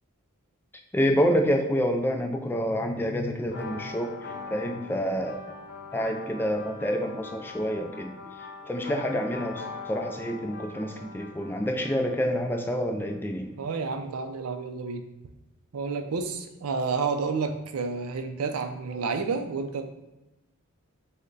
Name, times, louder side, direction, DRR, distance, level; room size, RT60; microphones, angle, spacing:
voice 1, 0.9-4.2 4.5-5.4 5.9-8.1 8.7-13.5, equal, 10° left, 4 dB, 0.3 m, -27 dB
sound 1, 3.4-13.0, left 4 dB, 55° left, 0.9 m, -42 dB
voice 2, 13.6-15.0 15.7-19.8, right 4 dB, 80° right, 7 dB, 0.5 m, -30 dB
5.2 x 2.1 x 3.9 m, 0.99 s
head